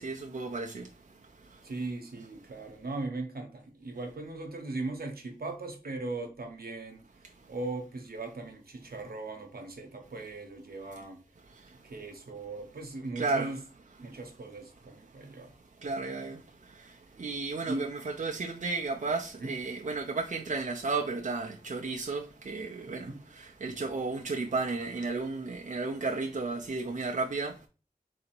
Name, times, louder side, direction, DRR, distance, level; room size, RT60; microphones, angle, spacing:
voice 1, 0.0-1.7 7.4-7.5 11.5-11.8 13.2-13.5 15.1-15.4 15.8-27.7, right 3 dB, 55° right, 0.6 m, -34 dB
voice 2, 1.6-7.0 7.5-11.2 11.7-13.6 14.0-15.5 15.8-16.3 17.7-17.9 19.4-19.6 22.8-23.2, right 2 dB, 80° right, 0.9 m, -39 dB
3.9 x 2.8 x 4.4 m
wide cardioid pair, 55°, 16 cm